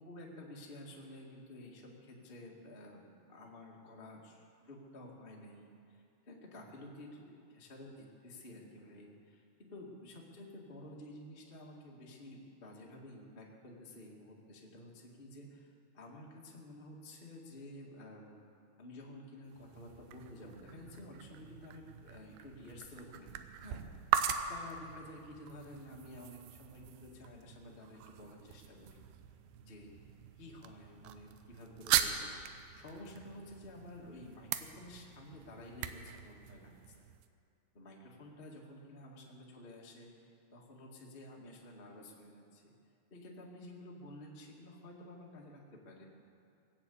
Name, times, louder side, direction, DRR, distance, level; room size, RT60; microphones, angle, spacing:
voice 1, 0.0-18.4 18.8-23.8 24.5-29.0 29.7-30.0 30.4-36.9 37.7-42.6 43.1-46.0, left 1 dB, 45° left, -2 dB, 0.6 m, -52 dB
sound 1, 19.5-37.3, right 10 dB, 80° right, 2.1 m, -40 dB
20.5 x 8.3 x 8.3 m, 2.5 s
omnidirectional pair, 4.7 m